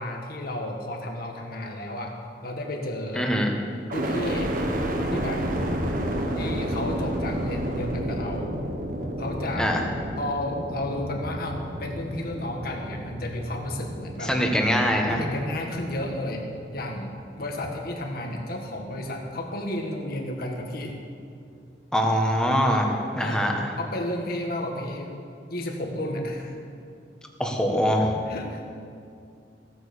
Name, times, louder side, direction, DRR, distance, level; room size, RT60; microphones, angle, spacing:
voice 1, 0.0-2.2 2.4-3.3 3.9-4.5 5.1-5.4 6.4-8.5 9.2-9.7 10.2-14.3 15.1-17.1 17.4-21.0 23.2-23.4 23.8-25.2 25.5-26.6 28.3-28.7, left 1 dB, 60° left, 1 dB, 1.8 m, -32 dB
voice 2, 3.1-3.5 9.6-9.8 14.2-15.2 21.9-23.7 27.4-28.2, equal, 5° left, 1 dB, 1.5 m, -23 dB
sound 1, 3.9-17.9 18.4-19.1, equal, 55° right, 1.4 m, -31 dB
16.5 x 8.8 x 6.9 m, 2.4 s
head